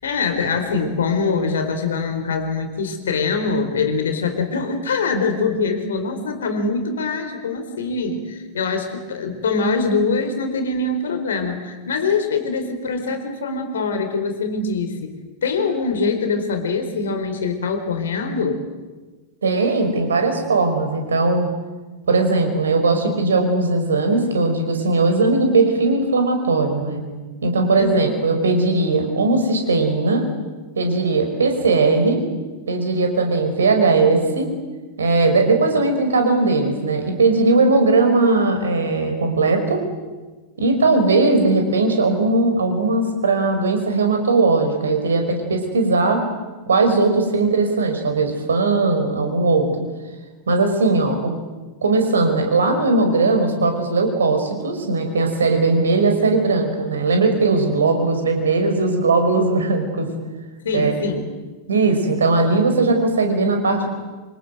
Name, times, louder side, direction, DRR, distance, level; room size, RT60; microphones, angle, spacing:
voice 1, 0.0-15.2 15.4-18.6 27.8-28.0 60.6-61.3, left 4 dB, 65° left, 7 dB, 4.3 m, -23 dB
voice 2, 19.4-21.5 22.1-27.0 27.4-30.2 30.8-32.2 32.7-34.5 35.0-39.8 40.6-46.2 46.7-49.7 50.5-51.3 51.8-60.1 60.7-61.0 61.7-63.9, right 3 dB, 70° right, 5 dB, 5.6 m, -18 dB
27.0 x 26.5 x 8.0 m, 1.3 s
figure-of-eight pair, 90°, 0 cm